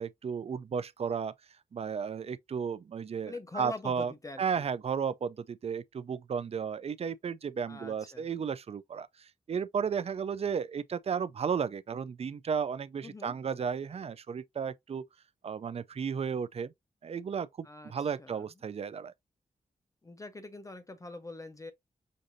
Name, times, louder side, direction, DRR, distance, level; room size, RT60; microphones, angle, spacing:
voice 1, 0.0-1.3 1.7-4.1 4.4-15.0 15.4-16.7 17.0-19.1, right 6 dB, 45° right, 0.4 m, -34 dB
voice 2, 3.3-4.7 7.7-8.3 13.0-13.4 17.6-18.5 20.0-21.7, left 2 dB, 25° left, 0.5 m, -44 dB
6.3 x 2.6 x 2.6 m
wide cardioid pair, 95°, 14 cm